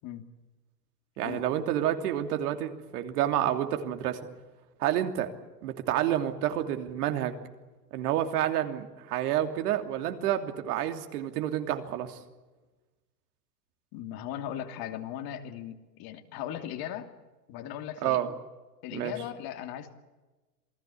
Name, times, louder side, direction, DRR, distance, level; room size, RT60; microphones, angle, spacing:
voice 1, 1.2-4.2 4.8-5.3 5.6-7.3 7.9-12.2 18.0-18.3 18.9-19.1, right 11 dB, 65° right, 6 dB, 3.1 m, -29 dB
voice 2, 13.9-17.1 17.5-18.2 18.8-19.9, left 10 dB, 45° left, 7 dB, 2.9 m, -38 dB
28.0 x 18.5 x 8.5 m, 1.2 s
hypercardioid pair, 115°, 49 cm